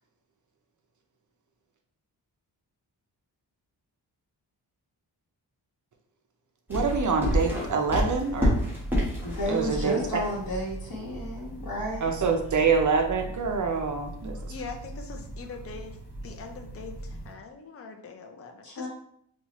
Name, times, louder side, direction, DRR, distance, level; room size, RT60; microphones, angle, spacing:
sound 1, 6.7-17.3, equal, 5° right, 1.3 m, -32 dB
voice 1, 6.7-8.5 9.5-10.2 12.0-14.4, right 5 dB, 45° right, 3 dB, 0.5 m, -26 dB
voice 2, 9.2-12.1 18.6-18.9, equal, 60° left, -5 dB, 1.1 m, -32 dB
voice 3, 14.3-16.0 16.2-18.9, left 4 dB, 35° left, 4 dB, 0.5 m, -42 dB
4.2 x 2.4 x 2.9 m, 0.67 s
wide cardioid pair, 125°, 42 cm